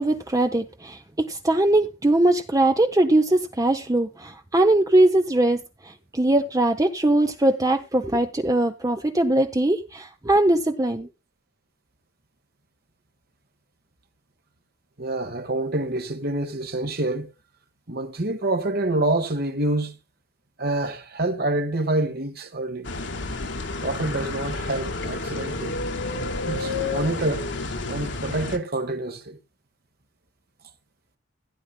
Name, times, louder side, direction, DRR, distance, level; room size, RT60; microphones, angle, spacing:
voice 1, 0.0-5.6 5.9-11.1, right 1 dB, 20° right, 0.7 m, -21 dB
voice 2, 15.0-17.3 17.9-20.0 20.6-22.9 23.8-25.8 26.4-27.5 27.9-29.4, right 2 dB, 55° right, 1.7 m, -27 dB
sound 1, 22.8-28.6, left 3 dB, 70° left, 1.7 m, -30 dB
16.0 x 9.5 x 2.3 m
head